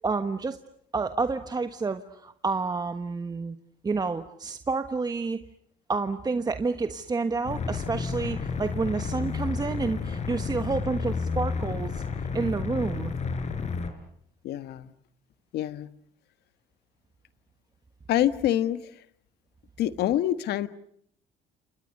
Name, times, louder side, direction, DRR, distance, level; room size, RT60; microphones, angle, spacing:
voice 1, 0.0-0.6 0.9-3.6 3.8-5.4 5.9-12.0 12.3-13.1, right 4 dB, 25° right, 9 dB, 1.3 m, -29 dB
sound 1, 7.5-13.9, left 5 dB, 45° left, 4.4 m, -31 dB
voice 2, 14.4-14.9 15.5-15.9 18.1-18.8 19.8-20.7, left 12 dB, 75° left, 12 dB, 1.6 m, -26 dB
29.5 x 28.0 x 6.7 m, 0.71 s
cardioid pair, 110°, 17 cm